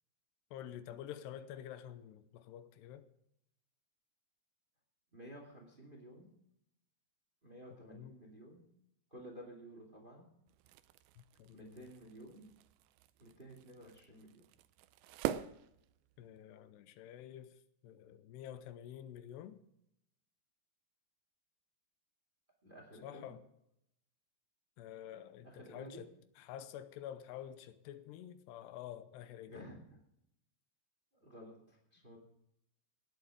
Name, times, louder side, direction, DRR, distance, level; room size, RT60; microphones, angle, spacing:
voice 1, 0.5-3.1 7.8-8.2 11.2-11.9 16.2-17.6 17.8-19.6 23.0-23.4 24.8-26.1 26.4-29.7, left 10 dB, 85° left, 12 dB, 2.9 m, -49 dB
voice 2, 5.1-6.3 7.4-8.6 9.1-10.3 11.5-12.5 13.2-14.4 22.6-23.3 25.4-26.0 29.5-29.8 31.2-32.2, right 1 dB, 15° right, 1 dB, 1.8 m, -53 dB
sound 1, 10.5-16.5, right 12 dB, 80° right, 2.4 m, -45 dB
19.0 x 8.0 x 5.0 m, 0.78 s
omnidirectional pair, 4.9 m